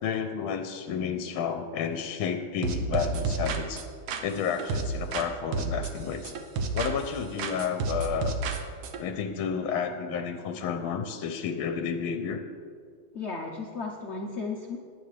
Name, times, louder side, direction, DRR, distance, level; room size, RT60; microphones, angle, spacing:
voice 1, 0.0-3.9 4.2-6.3 6.7-8.3 9.0-12.4, left 7 dB, 80° left, 7 dB, 1.5 m, -31 dB
sound 1, 2.6-5.3 5.5-7.1 7.4-9.0, right 3 dB, 75° right, 1.7 m, -31 dB
voice 2, 13.1-14.8, left 4 dB, 55° left, 2 dB, 0.8 m, -34 dB
18.5 x 10.5 x 3.3 m, 2.1 s
omnidirectional pair, 2.3 m